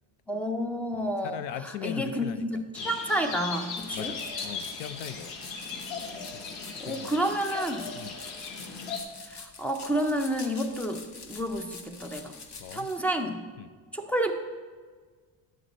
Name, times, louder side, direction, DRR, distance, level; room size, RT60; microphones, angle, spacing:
voice 1, 0.3-4.1 6.8-7.9 9.3-12.4 12.7-13.4 13.9-14.3, right 1 dB, 5° left, 5 dB, 0.4 m, -30 dB
voice 2, 0.9-2.5 2.8-2.9 3.9-5.4 6.3-7.2 8.0-8.2 12.6-12.9 13.6-13.7, left 10 dB, 70° left, 13 dB, 0.6 m, -40 dB
sound 1, 2.7-9.0, left 5 dB, 90° left, 1.4 m, -38 dB
sound 2, 3.8-13.0, left 4 dB, 40° left, 0.9 m, -46 dB
11.0 x 7.5 x 4.0 m, 1.5 s
cardioid pair, 155°, 45 cm